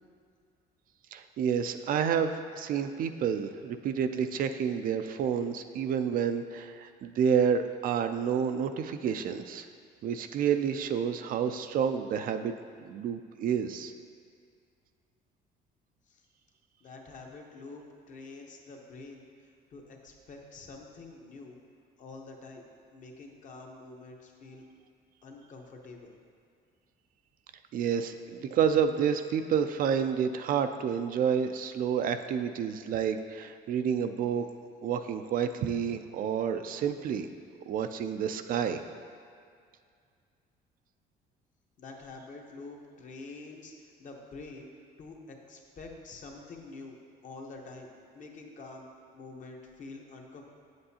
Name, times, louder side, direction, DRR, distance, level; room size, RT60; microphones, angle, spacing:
voice 1, 1.1-9.7 10.0-12.5 12.8-13.9 27.7-34.5 34.8-37.3 37.7-38.8, right 7 dB, 55° right, 8 dB, 0.4 m, -29 dB
voice 2, 16.8-19.3 19.7-21.6 22.0-24.6 25.2-26.1 41.8-44.7 45.0-47.0 47.2-48.9 49.1-50.4, left 3 dB, 50° left, 1 dB, 1.0 m, -47 dB
7.8 x 7.5 x 2.8 m, 2.2 s
cardioid pair, 110°, 17 cm